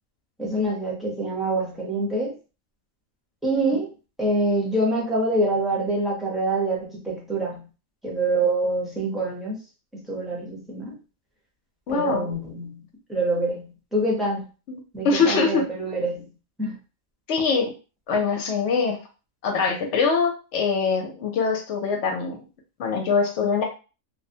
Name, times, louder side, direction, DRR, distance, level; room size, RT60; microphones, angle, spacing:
voice 1, 0.4-2.3 3.4-3.9 4.2-7.7 8.0-9.6 9.9-11.0 11.9-14.4 14.9-16.3 16.6-16.8, right 2 dB, ahead, -5 dB, 0.6 m, -26 dB
voice 2, 11.9-12.3 14.7-14.8 15.0-15.6 17.3-17.7 18.1-19.0 19.4-22.4 22.8-23.6, left 5 dB, 65° left, 2 dB, 0.8 m, -23 dB
2.5 x 2.0 x 2.6 m, 0.32 s
omnidirectional pair, 1.4 m